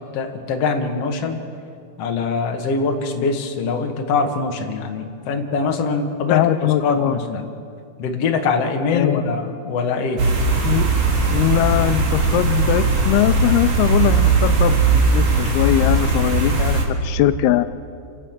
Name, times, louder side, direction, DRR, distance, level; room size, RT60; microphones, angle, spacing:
voice 1, 0.1-1.4 2.0-6.4 6.8-7.5 8.0-10.2, left 4 dB, 55° left, 3 dB, 2.0 m, -23 dB
voice 2, 6.3-7.2 8.9-9.2 10.6-10.9 11.3-17.6, left 13 dB, 85° left, 12 dB, 2.6 m, -20 dB
sound 1, 10.2-16.8, right 3 dB, 45° right, 2.9 m, -18 dB
28.0 x 15.5 x 5.9 m, 2.4 s
omnidirectional pair, 4.4 m